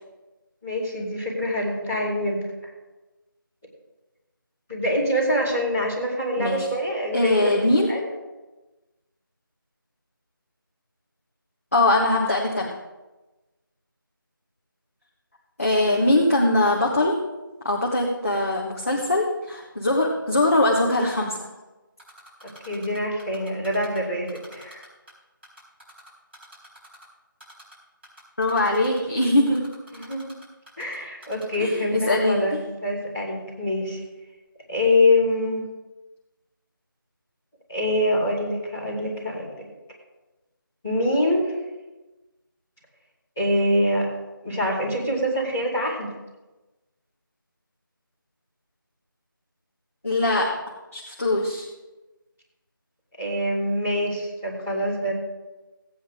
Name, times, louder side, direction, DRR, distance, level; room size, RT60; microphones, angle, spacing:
voice 1, 0.6-2.7 4.7-7.6 7.9-8.1 15.9-16.0 22.4-24.8 29.9-30.3 30.8-34.0 34.7-35.6 37.7-39.7 40.8-41.5 43.4-44.1 44.4-46.1 53.2-55.1, left 1 dB, 5° left, -14 dB, 1.1 m, -25 dB
voice 2, 6.4-6.7 7.1-8.0 11.7-12.7 15.6-17.2 17.6-21.5 28.4-29.7 31.6-32.4 50.0-50.6 50.9-51.6, left 1 dB, 40° left, -2 dB, 1.3 m, -22 dB
Typing, 22.0-24.0 24.3-25.1 25.4-27.0 27.4-27.7 28.0-30.9 31.2-31.6, equal, 30° right, 4.4 m, -47 dB
16.5 x 9.0 x 3.7 m, 1.1 s
figure-of-eight pair, 180°, 12 cm